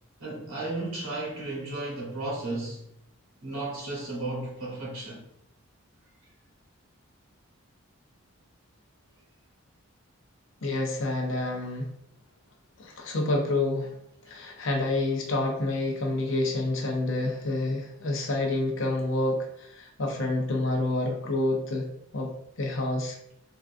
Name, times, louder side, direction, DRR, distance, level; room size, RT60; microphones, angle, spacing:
voice 1, 0.2-2.8 3.4-5.2, right 2 dB, 80° right, 1.1 m, -34 dB
voice 2, 10.6-11.9 12.8-13.9 14.2-21.9 22.1-23.2, left 2 dB, 60° left, 0.6 m, -28 dB
3.6 x 2.5 x 2.5 m
head